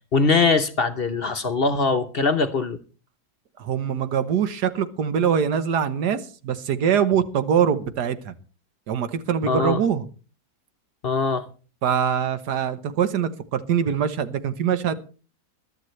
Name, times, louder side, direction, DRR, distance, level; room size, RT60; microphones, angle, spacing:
voice 1, 0.1-2.8 9.5-9.8 11.0-11.5, left 4 dB, 45° left, 1.0 m, -22 dB
voice 2, 3.6-8.3 8.9-10.0 11.8-14.9, right 8 dB, 90° right, 1.6 m, -23 dB
21.5 x 12.0 x 3.2 m
omnidirectional pair, 1.7 m